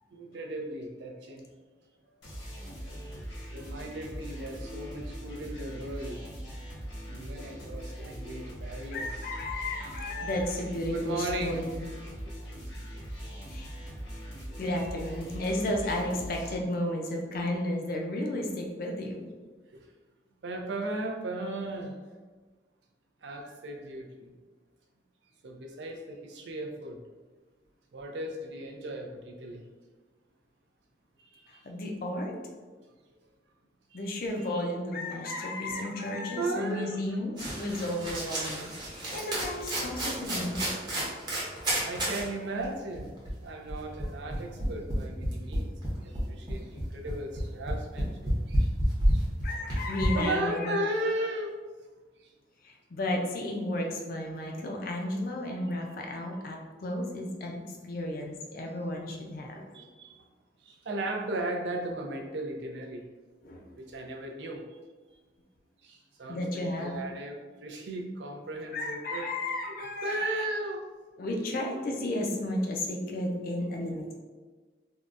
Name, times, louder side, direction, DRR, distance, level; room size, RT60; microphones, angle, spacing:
voice 1, 0.1-1.5 2.2-2.3 3.5-6.2 7.0-9.1 10.9-11.6 14.7-14.9 19.7-19.8 20.4-21.9 23.2-24.3 25.4-27.0 27.9-29.6 31.2-31.7 33.9-34.5 36.4-37.0 38.0-38.2 39.9-40.6 41.8-43.1 43.4-48.7 49.1-49.3 50.1-51.6 52.2-52.3 59.7-60.1 60.6-63.0 63.8-64.6 65.8-69.3 69.7-70.8, right 1 dB, 75° right, 1 dB, 0.5 m, -36 dB
sound 1, 2.2-16.6, equal, 85° left, 1.2 m, -41 dB
voice 2, 8.9-11.8 13.5-13.7 14.6-19.2 31.5-32.3 33.9-40.7 49.4-50.9 52.6-59.7 63.4-63.6 66.3-67.0 68.7-70.2 71.2-74.2, left 1 dB, 50° left, 1 dB, 0.5 m, -33 dB
sound 2, 37.4-42.3 42.6-42.7 42.9-50.0, right 1 dB, 25° right, 0.7 m, -31 dB
3.6 x 2.2 x 2.5 m, 1.3 s
head